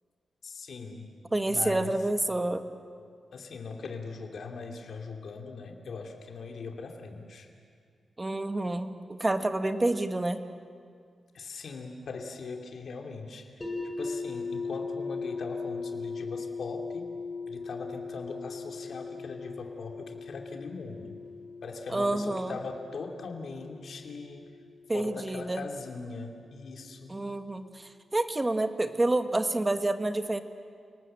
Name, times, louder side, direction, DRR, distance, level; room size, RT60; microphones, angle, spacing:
voice 1, 0.4-1.1 1.5-2.0 3.3-7.5 11.3-17.1 17.5-21.2 21.6-24.5 24.9-27.2, left 4 dB, 70° left, 2 dB, 2.6 m, -40 dB
voice 2, 1.3-2.6 8.2-10.5 21.9-22.6 24.9-25.6 27.1-30.4, right 2 dB, 20° right, 8 dB, 1.4 m, -28 dB
sound 1, 13.6-25.5, left 4 dB, 20° left, 6.0 m, -39 dB
29.0 x 19.0 x 7.6 m, 2.2 s
cardioid pair, 95°, 0 cm